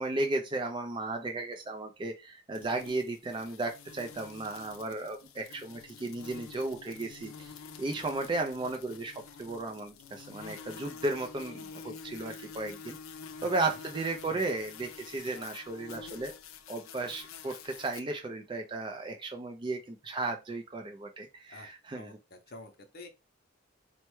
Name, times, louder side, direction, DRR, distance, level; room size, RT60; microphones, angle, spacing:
voice 1, 0.0-13.0 13.4-16.3 16.7-22.2, right 2 dB, 25° right, 0.3 m, -35 dB
sound 1, 2.5-18.0, left 6 dB, 85° left, 0.5 m, -48 dB
voice 2, 13.4-13.8 14.3-14.7 21.5-23.1, left 2 dB, 50° left, 0.7 m, -50 dB
4.4 x 2.1 x 3.0 m
head